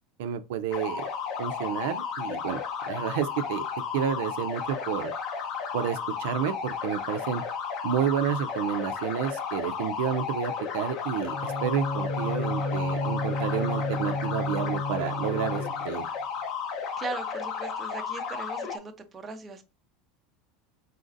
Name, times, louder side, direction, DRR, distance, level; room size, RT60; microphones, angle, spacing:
voice 1, 0.2-1.1 1.4-2.6 2.9-3.6 3.9-5.1 5.7-7.4 7.8-16.0, right 9 dB, 80° right, 0.5 m, -30 dB
sound 1, 0.7-18.8, left 6 dB, 45° left, 0.9 m, -33 dB
Bowed string instrument, 11.2-16.1, left 1 dB, 75° left, 0.8 m, -32 dB
voice 2, 17.0-19.6, right 3 dB, 15° right, 0.7 m, -39 dB
4.0 x 3.9 x 2.5 m
supercardioid pair, 150°, 0 cm